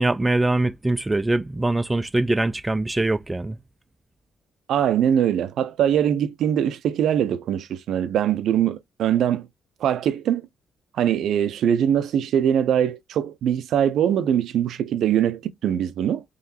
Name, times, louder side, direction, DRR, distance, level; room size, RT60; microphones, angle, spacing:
voice 1, 0.0-3.6, right 2 dB, 15° right, 0.4 m, -23 dB
voice 2, 4.7-9.5 9.8-10.5 10.9-16.2, right 9 dB, 75° right, 0.6 m, -22 dB
3.8 x 3.2 x 2.8 m
cardioid pair, 90°, 0 cm